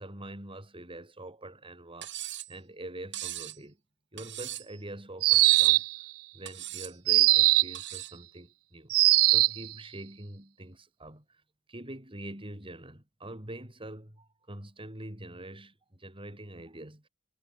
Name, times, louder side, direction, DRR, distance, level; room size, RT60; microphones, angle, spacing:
voice 1, 0.0-3.8 4.1-5.8 6.3-11.4 11.7-17.1, right 1 dB, 25° right, 6.0 m, -45 dB
Cutlery silverware, 2.0-2.5 3.1-3.6 4.2-4.8 5.3-5.8 6.5-7.0 7.7-8.2, right 13 dB, 60° right, 7.8 m, -39 dB
sound 1, 5.2-6.0 7.1-7.8 8.9-9.6, right 20 dB, 75° right, 0.4 m, -21 dB
head